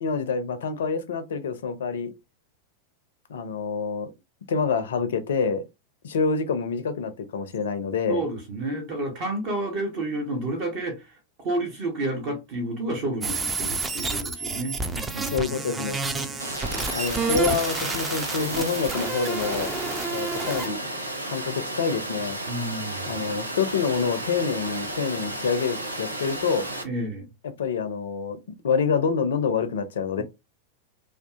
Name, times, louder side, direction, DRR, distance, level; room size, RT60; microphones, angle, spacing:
voice 1, 0.0-2.1 3.3-4.1 4.5-5.6 6.0-8.2 15.3-16.0 16.9-19.7 20.1-20.8 21.3-22.4 23.0-26.7 27.4-30.2, left 5 dB, 60° left, 0.4 m, -27 dB
voice 2, 8.1-11.2 11.4-16.5 22.5-23.1 26.8-27.3, right 2 dB, 45° right, 0.8 m, -31 dB
sound 1, 13.2-20.7, right 4 dB, 15° right, 0.4 m, -30 dB
Water, 16.4-26.8, right 1 dB, 85° right, 0.5 m, -33 dB
2.5 x 2.3 x 2.3 m
figure-of-eight pair, 90°, 0 cm